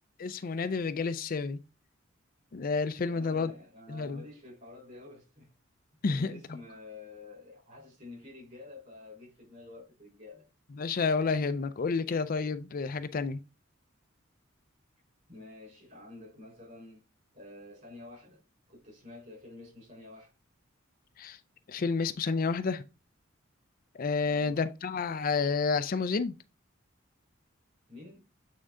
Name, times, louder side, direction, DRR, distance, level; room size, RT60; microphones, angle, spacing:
voice 1, 0.2-1.6 2.5-3.5 3.9-4.2 6.0-6.6 10.8-13.4 21.2-21.4 21.7-22.9 23.9-26.3, left 4 dB, 45° left, 0.4 m, -30 dB
voice 2, 3.1-5.5 6.0-10.5 15.3-17.0 17.3-18.4 18.7-20.3 24.3-24.6 27.9-28.3, left 2 dB, 45° right, 4.2 m, -49 dB
8.6 x 3.7 x 3.7 m
head